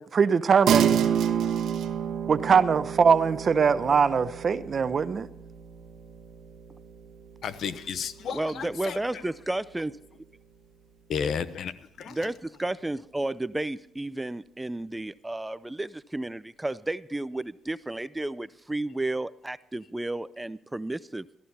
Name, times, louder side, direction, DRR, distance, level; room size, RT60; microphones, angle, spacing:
voice 1, 0.1-1.1 2.3-5.3, right 6 dB, 45° right, 0.7 m, -22 dB
sound 1, 0.7-10.4, right 8 dB, 75° right, 1.2 m, -30 dB
voice 2, 7.4-9.0 11.1-11.7 12.0-12.2, left 6 dB, 65° left, 0.8 m, -32 dB
voice 3, 8.3-10.0 12.1-21.4, right 2 dB, 10° right, 0.4 m, -32 dB
14.0 x 13.0 x 4.2 m
cardioid pair, 90°, 0 cm